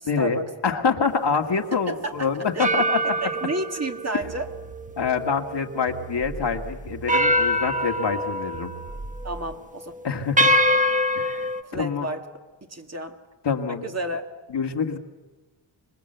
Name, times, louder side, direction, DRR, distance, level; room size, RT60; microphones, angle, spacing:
voice 1, 0.0-3.3 5.0-8.7 10.0-10.5 11.2-12.1 13.4-13.9 14.5-15.0, left 5 dB, 55° left, 4 dB, 2.0 m, -26 dB
sound 1, 1.1-1.3 2.6-6.0 6.4-6.5 7.1-8.9 9.3-9.5 10.4-11.6, equal, 15° right, 1.2 m, -24 dB
voice 2, 1.9-2.6 3.2-4.5 9.2-9.9 10.7-10.8 11.6-12.2 12.7-13.2 13.8-14.3, right 2 dB, 30° right, 4 dB, 2.1 m, -31 dB
sound 2, 4.2-9.5, right 3 dB, 50° right, 2.2 m, -41 dB
26.0 x 20.5 x 8.0 m, 1.2 s
wide cardioid pair, 90°, 49 cm